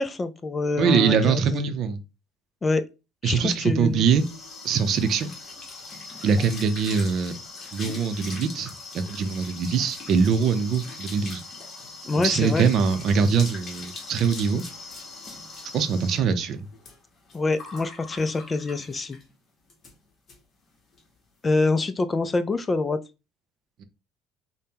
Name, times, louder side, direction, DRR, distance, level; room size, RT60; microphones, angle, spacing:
voice 1, 0.0-1.7 2.6-2.9 3.2-4.0 12.1-12.7 17.3-19.2 21.4-23.0, left 3 dB, 20° left, 0.4 m, -25 dB
voice 2, 0.8-2.0 3.2-4.2 4.6-5.3 6.2-7.4 7.7-11.4 12.2-14.6 15.7-16.7 23.8-23.9, right 6 dB, 55° right, 0.6 m, -23 dB
sound 1, 3.6-19.3 19.7-19.9 20.3-20.4 20.7-21.0, left 3 dB, 40° left, 1.1 m, -41 dB
5.1 x 2.2 x 2.8 m
cardioid pair, 120°, 0 cm